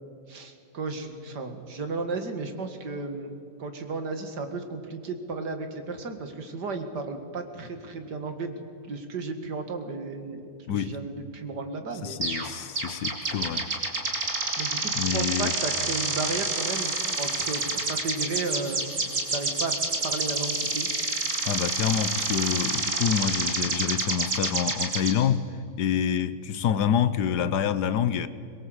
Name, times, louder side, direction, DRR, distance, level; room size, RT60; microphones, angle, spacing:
voice 1, 0.3-3.3 3.6-12.2 14.6-19.8 20.0-20.9, right 3 dB, 80° right, 2.5 m, -34 dB
voice 2, 10.7-11.0 12.0-13.6 14.9-15.5 21.4-25.5 25.8-28.3, left 8 dB, 80° left, 1.5 m, -27 dB
sound 1, 12.2-12.5 12.8-25.1, right 2 dB, 60° right, 3.1 m, -28 dB
22.5 x 21.5 x 8.0 m
omnidirectional pair, 1.8 m